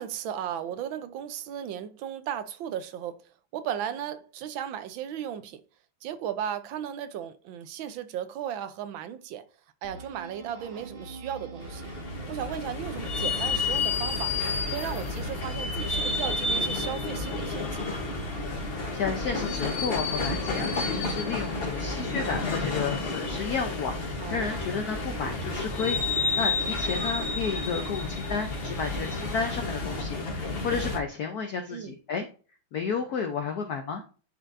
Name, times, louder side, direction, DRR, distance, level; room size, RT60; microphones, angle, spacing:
voice 1, 0.0-3.2 3.5-5.6 6.0-9.4 9.8-11.9 12.3-14.3 14.7-18.0 24.2-24.7 31.7-32.0, right 9 dB, 75° right, 1.4 m, -35 dB
sound 1, 9.8-16.4, right 2 dB, 35° right, 1.1 m, -42 dB
sound 2, 11.6-31.0, left 3 dB, 40° left, 1.0 m, -30 dB
voice 2, 18.9-32.3 32.7-34.0, left 5 dB, 60° left, 1.1 m, -32 dB
9.9 x 4.3 x 2.6 m
omnidirectional pair, 2.3 m